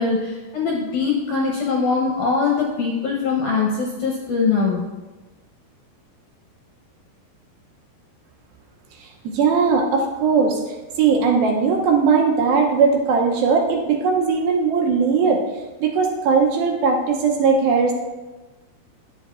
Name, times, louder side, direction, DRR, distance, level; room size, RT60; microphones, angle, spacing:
voice 1, 0.0-4.8, left 4 dB, 75° left, -2 dB, 1.8 m, -22 dB
voice 2, 9.0-10.6 11.0-15.4 15.8-17.9, right 5 dB, 80° right, 2 dB, 2.3 m, -19 dB
10.5 x 7.6 x 2.4 m, 1.2 s
omnidirectional pair, 4.7 m